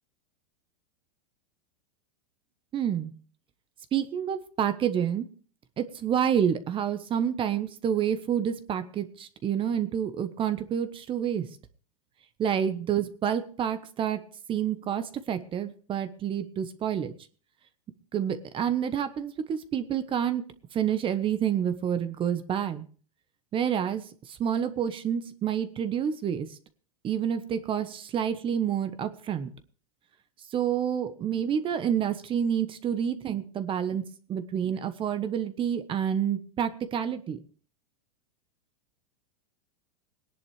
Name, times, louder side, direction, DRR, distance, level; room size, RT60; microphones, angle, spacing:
voice 1, 2.7-3.1 3.9-5.3 5.8-11.5 12.4-14.2 14.5-17.1 18.1-20.4 20.7-22.9 23.5-26.5 27.0-29.5 30.5-34.0 34.3-37.4, right 9 dB, 30° right, 11 dB, 1.1 m, -28 dB
19.5 x 10.5 x 3.3 m, 0.40 s
hypercardioid pair, 120°, 19 cm